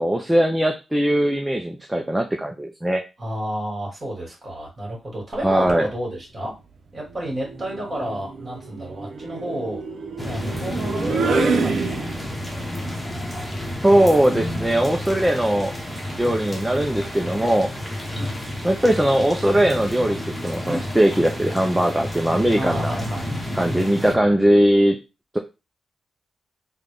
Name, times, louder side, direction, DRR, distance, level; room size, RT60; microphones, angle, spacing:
voice 1, 0.0-3.0 5.4-5.9 13.8-15.8 16.1-17.7 18.6-23.0 23.6-25.0 25.3-25.4, right 1 dB, 10° right, 3 dB, 0.4 m, -20 dB
voice 2, 3.2-6.5 6.9-9.8 10.3-12.1 12.6-13.0 18.1-18.5 19.2-19.3 20.7-20.9 22.5-23.3 23.7-24.2, right 1 dB, 30° right, -2 dB, 2.1 m, -31 dB
sound 1, 5.3-5.9 7.2-12.5, right 4 dB, 75° right, 0.5 m, -27 dB
sound 2, 10.2-24.1, left 1 dB, 15° left, 1.1 m, -30 dB
3.7 x 2.2 x 3.4 m, 0.28 s
cardioid pair, 105°, 0 cm